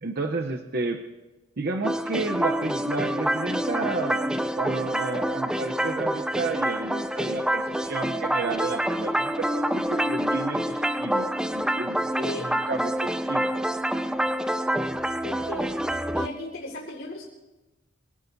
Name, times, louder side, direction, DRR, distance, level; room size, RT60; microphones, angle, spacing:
voice 1, 0.0-1.0 1.6-11.3 11.5-12.3 12.7-13.5, right 3 dB, 50° right, 4 dB, 0.8 m, -32 dB
sound 1, 1.8-16.3, equal, 5° right, 0.4 m, -27 dB
voice 2, 12.2-12.6 15.2-15.7 16.1-17.2, left 1 dB, 80° left, -2 dB, 4.0 m, -36 dB
25.5 x 17.5 x 2.7 m, 1.1 s
head